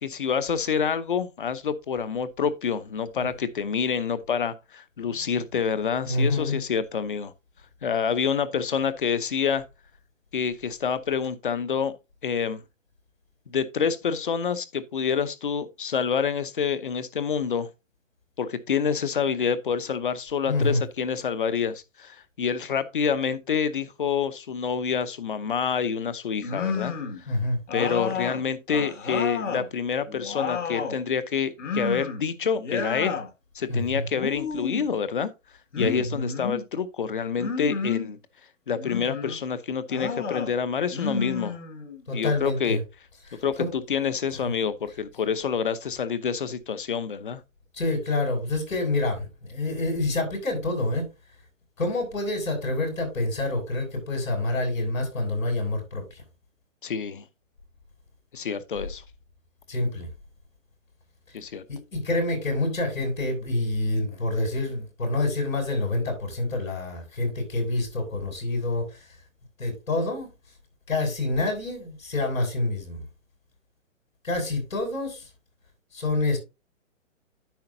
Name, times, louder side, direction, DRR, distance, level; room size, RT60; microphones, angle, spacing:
voice 1, 0.0-7.3 7.8-9.6 10.3-11.9 12.2-12.6 13.5-17.7 18.4-26.9 27.7-33.2 33.5-35.3 35.8-38.2 38.7-41.6 42.1-42.8 43.4-43.6 43.9-47.4 56.8-57.2 58.3-59.0 61.3-61.6, left 6 dB, 40° left, 0.8 m, -27 dB
voice 2, 6.1-6.6 20.5-20.8 27.3-27.6 33.7-34.1 35.8-36.2 42.1-42.8 43.3-43.7 44.3-44.5 47.7-51.1 51.8-56.2 59.7-60.1 61.3-61.4 61.7-69.1 69.6-70.3 70.9-73.1 74.2-75.3 75.9-76.4, left 2 dB, 85° left, 6.3 m, -27 dB
sound 1, 26.4-27.2 27.7-29.7 30.1-31.0 31.6-32.3 32.5-33.3 34.1-34.9 35.7-36.6 37.4-38.1 38.8-39.4 39.9-40.5 40.9-42.0, left 5 dB, 65° left, 2.1 m, -31 dB
10.5 x 7.7 x 2.7 m
hypercardioid pair, 175°, 39 cm